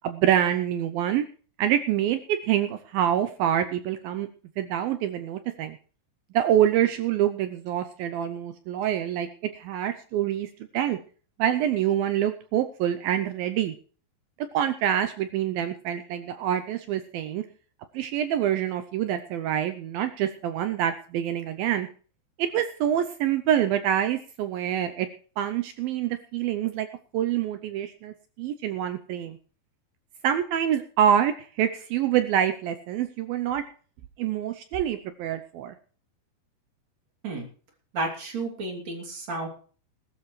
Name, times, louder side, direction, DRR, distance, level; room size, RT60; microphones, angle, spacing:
voice 1, 0.0-1.3 1.6-4.3 4.6-5.8 6.3-11.0 11.4-13.7 14.4-17.5 17.9-21.9 22.4-25.1 25.4-26.9 27.1-29.4 30.2-33.6 34.2-35.7, right 10 dB, 85° right, 9 dB, 2.1 m, -26 dB
voice 2, 37.9-39.5, right 2 dB, 45° right, 1 dB, 3.8 m, -31 dB
20.5 x 12.5 x 3.2 m, 0.41 s
omnidirectional pair, 5.1 m